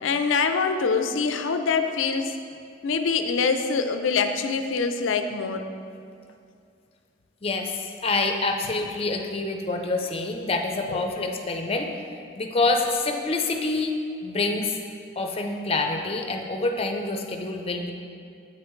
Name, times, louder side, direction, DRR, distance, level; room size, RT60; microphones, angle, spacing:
voice 1, 0.0-2.3 2.8-5.6 10.9-11.0, left 5 dB, 75° left, 7 dB, 0.5 m, -24 dB
voice 2, 7.4-11.9 12.4-14.0 14.2-14.8 15.2-17.9, left 3 dB, 30° left, 3 dB, 0.6 m, -26 dB
8.4 x 8.2 x 3.1 m, 2.4 s
head